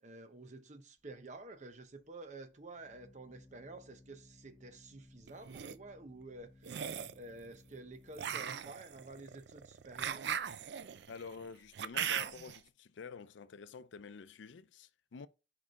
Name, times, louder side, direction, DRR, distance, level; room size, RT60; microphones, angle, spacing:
voice 1, 0.0-6.7 7.1-10.3, right 2 dB, 40° right, 0.8 m, -50 dB
Organ, 1.0-11.5, left 2 dB, 15° left, 0.8 m, -63 dB
sound 1, 5.3-5.7 6.6-7.2 8.2-12.6, right 8 dB, 70° right, 0.4 m, -39 dB
voice 2, 11.1-15.3, left 5 dB, 90° left, 0.5 m, -49 dB
6.4 x 4.9 x 3.6 m
head